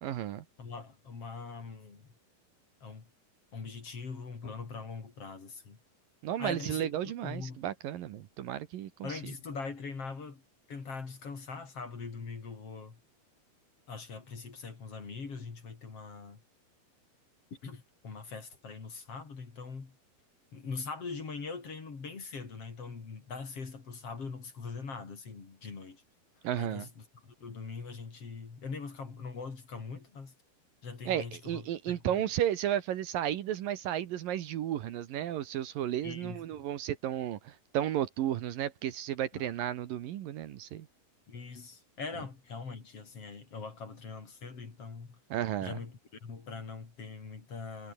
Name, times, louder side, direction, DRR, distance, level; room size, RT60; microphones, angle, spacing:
voice 1, 0.0-0.4 6.2-9.2 26.4-26.9 31.1-40.9 45.3-45.8, right 11 dB, 70° right, 2.9 m, -33 dB
voice 2, 0.6-2.1 2.8-3.1 3.5-5.8 6.4-7.6 9.0-10.4 10.7-13.0 13.9-16.4 17.5-19.9 20.5-26.0 26.5-30.3 30.8-32.3 36.0-36.6 39.3-39.5 41.3-45.2 45.6-47.9, left 4 dB, 40° left, 4.4 m, -42 dB
omnidirectional pair, 4.4 m